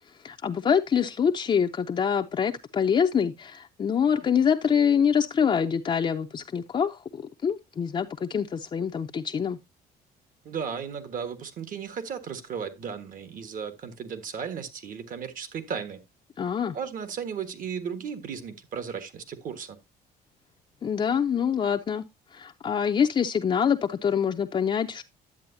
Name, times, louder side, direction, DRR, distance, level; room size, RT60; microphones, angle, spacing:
voice 1, 0.2-9.6 16.4-16.8 20.8-22.0 22.3-25.0, left 7 dB, 30° left, 0.6 m, -25 dB
voice 2, 10.4-16.0 16.7-19.8, right 7 dB, 55° right, 1.5 m, -35 dB
10.5 x 8.0 x 2.7 m
cardioid pair, 110°, 17 cm